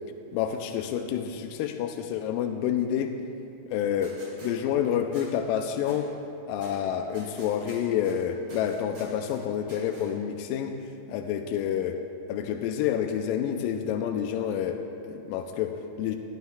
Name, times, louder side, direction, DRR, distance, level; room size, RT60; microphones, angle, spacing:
voice 1, 0.3-3.2 3.7-6.2 6.5-10.8 11.1-12.0 12.3-16.2, left 9 dB, 80° left, 5 dB, 2.2 m, -28 dB
sound 1, 4.0-4.5 5.1-5.3 5.9-6.0 6.6-6.7 7.1-8.2 8.5-9.4 9.7-10.0, right 2 dB, 50° right, 4.4 m, -49 dB
21.0 x 13.0 x 2.3 m, 2.7 s
omnidirectional pair, 4.1 m